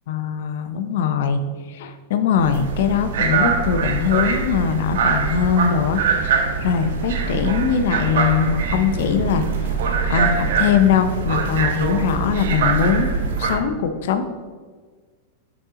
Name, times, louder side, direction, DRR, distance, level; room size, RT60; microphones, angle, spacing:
voice 1, 0.1-1.4 1.7-9.7 10.1-13.1 13.4-14.3, left 7 dB, 70° left, 8 dB, 0.6 m, -21 dB
sound 1, 2.4-13.6, right 5 dB, 75° right, 0.7 m, -23 dB
5.4 x 5.4 x 3.7 m, 1.5 s
supercardioid pair, 135°, 0 cm